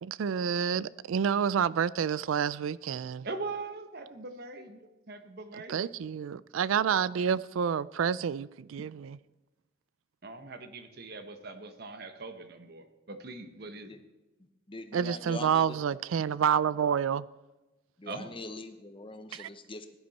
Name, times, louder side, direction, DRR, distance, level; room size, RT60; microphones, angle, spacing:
voice 1, 0.0-3.3 5.7-9.2 14.9-17.2 19.3-19.5, right 7 dB, 80° right, 0.4 m, -29 dB
voice 2, 3.2-5.9 10.2-14.0 18.1-18.4, right 3 dB, 50° right, 1.0 m, -41 dB
voice 3, 14.7-15.8 18.0-20.0, left 2 dB, 25° left, 0.9 m, -42 dB
16.0 x 10.5 x 4.2 m
head